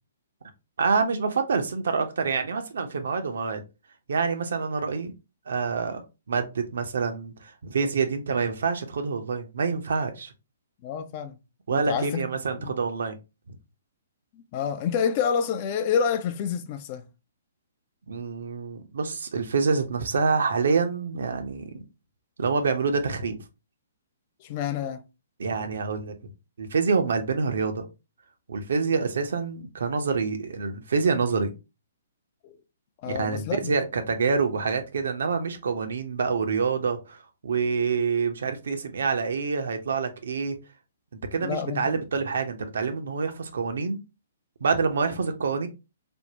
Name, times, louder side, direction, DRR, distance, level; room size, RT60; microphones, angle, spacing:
voice 1, 0.8-3.6 4.1-5.1 5.5-6.0 6.3-10.3 11.7-13.2 13.5-13.6 18.1-21.8 22.4-23.4 25.4-26.2 26.6-27.8 28.5-31.5 33.1-40.6 41.3-44.0 44.6-45.7, right 5 dB, 60° right, 0.5 m, -26 dB
voice 2, 10.8-11.4 11.7-12.3 12.6-12.7 14.3-17.0 24.4-25.0 32.4-32.6 33.0-33.7 41.4-42.0, left 7 dB, 35° left, 0.3 m, -28 dB
3.4 x 2.1 x 2.7 m
figure-of-eight pair, 120°, 0 cm